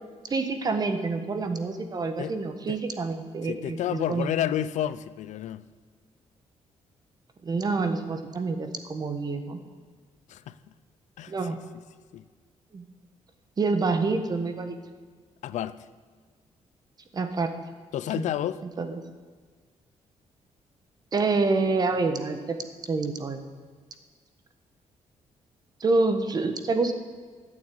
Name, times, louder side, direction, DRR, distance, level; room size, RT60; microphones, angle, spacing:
voice 1, 0.3-4.3 7.4-9.6 11.3-11.6 12.7-12.8 13.6-14.8 17.1-17.5 18.2-18.3 18.8-19.0 21.1-22.6 22.9-23.4 25.8-26.9, right 3 dB, 35° right, 1.4 m, -27 dB
voice 2, 3.4-5.6 10.3-10.5 11.2-11.3 12.1-12.2 15.4-15.8 17.9-18.6, left 11 dB, 85° left, 0.6 m, -30 dB
13.5 x 8.8 x 8.7 m
cardioid pair, 145°, 12 cm